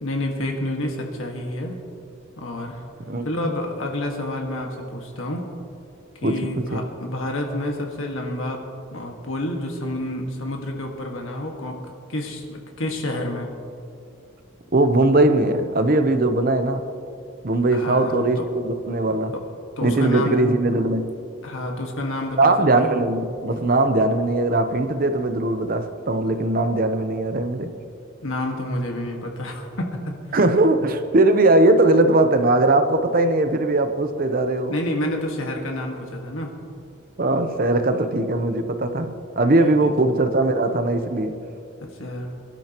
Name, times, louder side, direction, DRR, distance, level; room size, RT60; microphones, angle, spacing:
voice 1, 0.0-1.8 2.4-2.8 3.2-5.4 6.2-8.6 8.9-11.8 12.1-13.5 17.7-18.5 19.8-20.4 21.4-22.5 22.8-22.9 28.2-30.2 34.7-36.5 39.6-39.9 41.8-42.3, left 1 dB, 70° left, 1 dB, 1.7 m, -29 dB
voice 2, 6.2-6.8 14.7-16.8 17.4-19.3 19.8-21.0 22.4-27.7 30.3-34.7 37.2-41.3, right 2 dB, 40° right, 8 dB, 0.8 m, -20 dB
23.0 x 12.0 x 3.0 m, 2.5 s
head